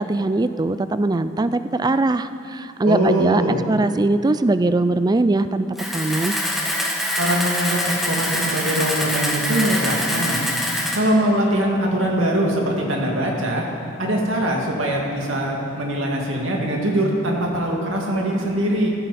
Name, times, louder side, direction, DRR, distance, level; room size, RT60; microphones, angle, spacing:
voice 1, 0.0-5.7 5.9-6.4, right 2 dB, 20° right, 12 dB, 0.4 m, -21 dB
voice 2, 2.8-3.6 7.1-7.8 8.1-10.4 10.9-13.6 14.0-18.9, right 1 dB, 80° right, -1 dB, 2.3 m, -22 dB
Camera, 5.8-11.0, left 1 dB, ahead, 1.8 m, -24 dB
15.5 x 14.5 x 4.2 m, 2.6 s
head